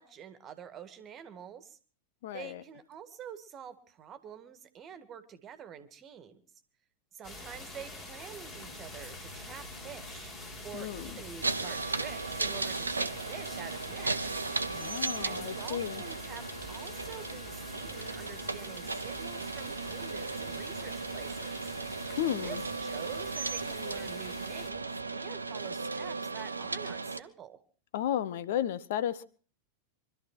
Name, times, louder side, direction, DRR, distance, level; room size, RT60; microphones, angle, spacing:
voice 1, 0.0-1.8 2.3-6.4 7.1-10.3 10.6-14.5 15.2-21.7 22.4-27.6, right 8 dB, 30° right, 12 dB, 1.9 m, -47 dB
voice 2, 2.2-2.6 10.7-11.1 14.7-16.0 22.2-22.6 27.9-29.2, left 11 dB, 55° left, 16 dB, 0.8 m, -33 dB
sound 1, 7.2-24.7, left 1 dB, 30° left, 5.7 m, -46 dB
sound 2, 8.4-24.7, left 1 dB, 85° left, 3.5 m, -52 dB
sound 3, 11.4-27.2, right 3 dB, 80° right, 0.9 m, -36 dB
24.0 x 13.0 x 4.4 m, 0.39 s
figure-of-eight pair, 90°, 0 cm